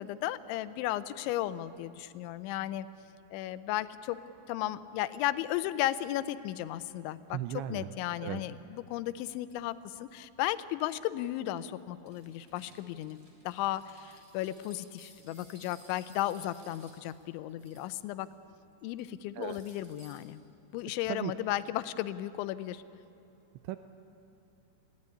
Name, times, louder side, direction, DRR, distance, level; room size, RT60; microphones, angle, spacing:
voice 1, 0.0-2.9 3.3-4.2 4.5-13.2 13.5-18.3 18.8-20.4 20.7-22.8, left 14 dB, 85° left, 14 dB, 3.0 m, -35 dB
voice 2, 7.3-7.9 8.2-8.4 19.4-19.6 21.1-21.3 23.6-23.8, right 14 dB, 80° right, 10 dB, 2.8 m, -36 dB
sound 1, 12.1-18.2 18.6-19.0 19.4-20.2, right 1 dB, 25° right, 3.6 m, -59 dB
21.0 x 16.5 x 9.7 m, 2.9 s
omnidirectional pair, 5.3 m